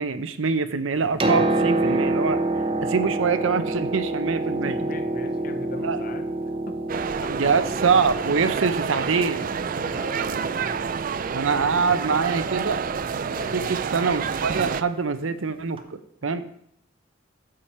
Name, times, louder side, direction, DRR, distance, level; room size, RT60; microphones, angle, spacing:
voice 1, 0.0-2.4 2.8-4.8 5.8-6.0 7.3-9.4 11.3-12.8 13.5-15.8 16.2-16.4, right 5 dB, 80° right, 11 dB, 0.7 m, -24 dB
Piano, 0.9-14.7 15.8-15.9, right 2 dB, 25° right, 0.7 m, -29 dB
voice 2, 4.4-6.3 6.7-6.8 7.2-7.3 9.8-10.8 13.3-13.7, left 2 dB, 45° left, 8 dB, 1.0 m, -39 dB
sound 1, 6.9-14.8, right 6 dB, 45° right, 0.4 m, -29 dB
9.8 x 7.4 x 4.4 m, 0.70 s
head